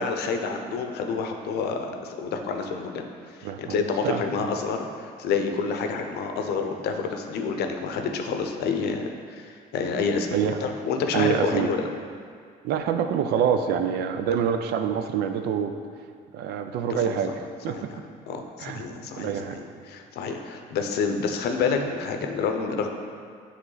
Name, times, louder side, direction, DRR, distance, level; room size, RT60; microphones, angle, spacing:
voice 1, 0.0-11.9 17.0-17.2 17.7-17.8 18.3-22.9, left 5 dB, 75° left, 5 dB, 0.6 m, -28 dB
voice 2, 3.4-4.2 10.3-10.6 11.1-11.7 12.6-15.8 16.3-17.4 17.6-17.8 18.6-18.9 19.2-19.6, right 8 dB, 75° right, 7 dB, 0.5 m, -26 dB
8.0 x 3.2 x 3.9 m, 2.1 s
cardioid pair, 110°, 17 cm